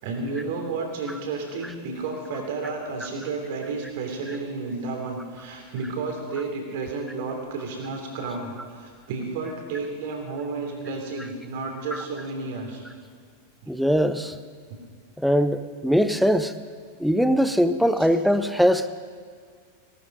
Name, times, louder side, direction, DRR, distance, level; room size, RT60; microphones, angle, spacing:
voice 1, 0.0-12.8, right 3 dB, 50° right, 2 dB, 3.1 m, -32 dB
voice 2, 13.7-14.4 15.2-16.5 17.0-18.9, equal, ahead, 11 dB, 0.7 m, -21 dB
18.0 x 13.0 x 5.3 m, 2.1 s
figure-of-eight pair, 90°, 0 cm